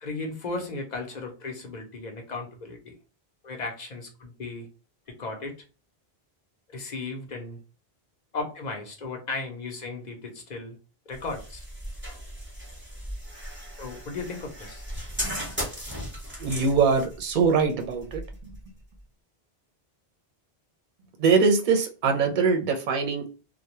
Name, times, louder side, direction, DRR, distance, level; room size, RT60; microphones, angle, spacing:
voice 1, 0.0-2.9 3.4-4.7 5.1-5.5 6.7-7.6 8.3-10.8 11.1-11.6 13.8-14.8, left 3 dB, 50° left, 3 dB, 0.7 m, -35 dB
sound 1, 11.1-19.0, equal, 10° right, 0.8 m, -37 dB
voice 2, 16.4-18.2 21.2-23.3, right 5 dB, 55° right, 3 dB, 0.7 m, -22 dB
2.2 x 2.1 x 2.8 m, 0.35 s
omnidirectional pair, 1.0 m